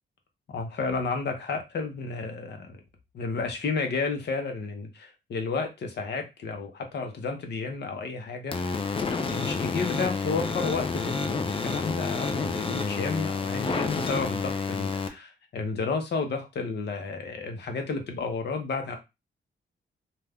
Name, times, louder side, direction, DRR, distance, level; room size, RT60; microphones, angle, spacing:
voice 1, 0.5-2.8 3.1-8.6 9.3-19.0, left 4 dB, 65° left, 5 dB, 0.8 m, -32 dB
sound 1, 8.5-15.1, left 4 dB, 30° left, 0.5 m, -29 dB
2.6 x 2.2 x 3.4 m, 0.24 s
cardioid pair, 115°, 19 cm